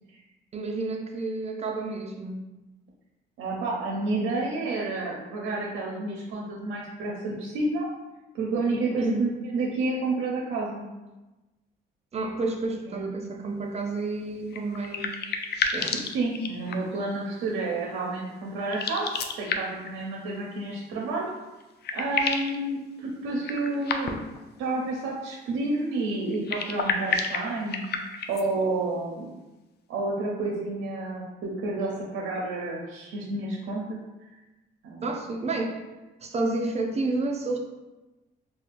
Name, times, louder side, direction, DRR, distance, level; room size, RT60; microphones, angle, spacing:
voice 1, 0.5-2.4 9.0-9.3 12.1-15.1 15.7-16.0 35.0-35.8 36.2-37.6, right 2 dB, 35° right, 3 dB, 0.5 m, -30 dB
voice 2, 3.4-7.9 8.3-10.9 12.9-13.1 16.1-21.2 21.9-24.2 24.6-29.4 29.9-34.0 34.8-35.0, right 2 dB, 90° right, -2 dB, 0.5 m, -30 dB
sound 1, 14.5-17.0 18.6-19.9 21.3-21.4 21.6-22.6 23.4-24.4 26.3-28.5, left 5 dB, 55° left, 0.4 m, -30 dB
4.2 x 2.3 x 2.5 m, 1.1 s
cardioid pair, 90°, 20 cm